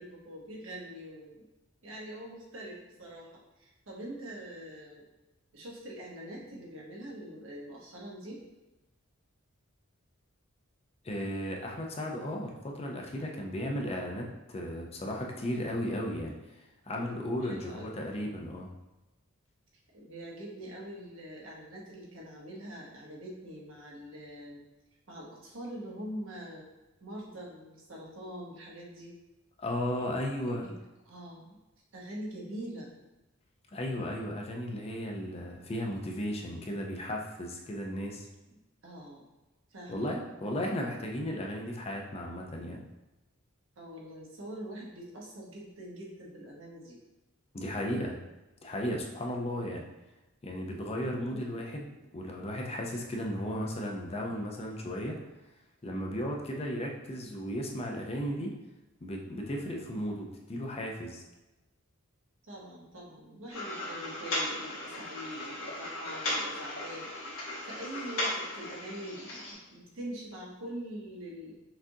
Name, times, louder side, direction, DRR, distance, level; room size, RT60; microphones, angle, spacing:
voice 1, 0.0-1.4 1.8-3.3 3.6-5.0 5.5-8.4 17.4-18.5 19.9-24.6 25.1-26.6 27.0-29.1 30.0-30.1 30.4-30.7 31.0-31.6 31.9-32.9 38.5-38.6 38.8-39.3 39.7-40.1 43.8-47.0 51.2-51.4 62.5-67.1 67.6-71.5, right 1 dB, 70° right, -3 dB, 1.0 m, -44 dB
voice 2, 11.0-16.4 16.9-18.7 29.6-30.7 33.7-38.3 39.9-42.8 47.5-48.2 48.6-49.8 50.4-55.2 55.8-58.5 59.0-61.2, equal, 30° left, 0 dB, 0.5 m, -35 dB
sound 1, 63.5-69.5, left 1 dB, 85° left, 1.2 m, -36 dB
5.9 x 2.5 x 2.7 m, 1.0 s
head